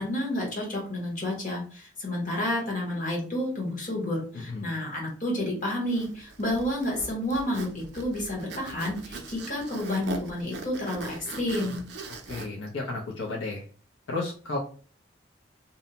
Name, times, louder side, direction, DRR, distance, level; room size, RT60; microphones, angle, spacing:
voice 1, 0.0-11.8, left 1 dB, 45° left, -2 dB, 1.0 m, -30 dB
Zipper (clothing), 5.9-12.5, right 3 dB, 60° right, 0.4 m, -40 dB
voice 2, 12.3-13.6 14.1-14.6, left 3 dB, 75° left, -2 dB, 0.6 m, -33 dB
2.6 x 2.1 x 2.8 m, 0.40 s
head